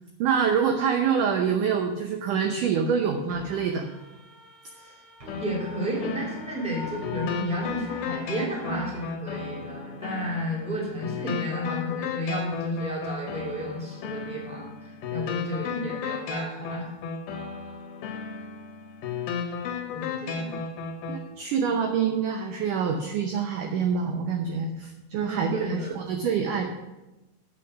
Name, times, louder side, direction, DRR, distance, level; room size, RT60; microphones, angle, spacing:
voice 1, 0.2-3.9 21.1-26.7, right 6 dB, 80° right, 4 dB, 1.9 m, -26 dB
sound 1, 3.3-9.0, left 2 dB, 35° right, 2.8 m, -44 dB
sound 2, 5.3-21.3, left 5 dB, 75° left, 2.9 m, -34 dB
voice 2, 5.3-16.9 19.9-20.6 25.2-25.9, equal, ahead, -4 dB, 2.1 m, -32 dB
8.6 x 7.6 x 7.0 m, 1.0 s
omnidirectional pair, 4.8 m